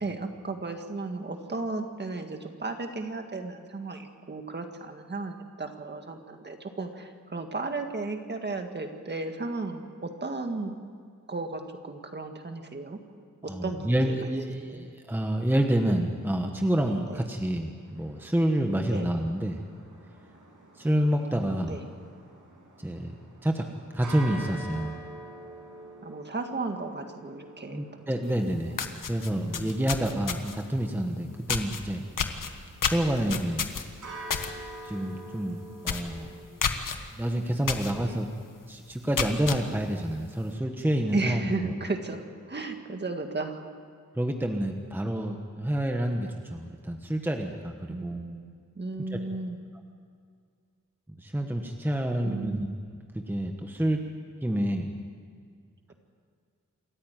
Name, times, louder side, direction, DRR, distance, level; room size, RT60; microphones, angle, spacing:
voice 1, 0.0-10.7 11.3-13.0 13.4-14.2 14.7-14.9 17.1-17.3 18.9-19.2 21.7-21.9 26.0-27.9 28.2-29.1 29.4-29.8 38.0-38.2 41.1-43.7 47.9-49.6 52.2-52.7, right 3 dB, 35° right, 5 dB, 1.8 m, -35 dB
voice 2, 13.5-19.6 20.8-21.8 22.8-23.1 23.4-23.7 23.9-25.0 27.7-28.8 29.1-32.0 32.5-32.6 32.9-33.7 34.8-36.3 37.1-38.3 38.7-41.7 44.2-48.2 49.1-49.2 51.2-52.7 53.3-54.0 54.4-54.9, right 1 dB, 5° right, 3 dB, 1.2 m, -28 dB
sound 1, 17.8-36.5, right 1 dB, 70° right, 6.9 m, -47 dB
sound 2, 28.3-28.4 28.7-30.7 31.5-31.8 32.2-34.5 34.9-35.1 35.4-35.5 35.8-36.1 36.6-37.0 37.7-37.9 38.4-38.5 39.0-39.6, left 6 dB, 90° left, 1.5 m, -30 dB
27.5 x 14.0 x 9.0 m, 2.2 s
wide cardioid pair, 175°, 31 cm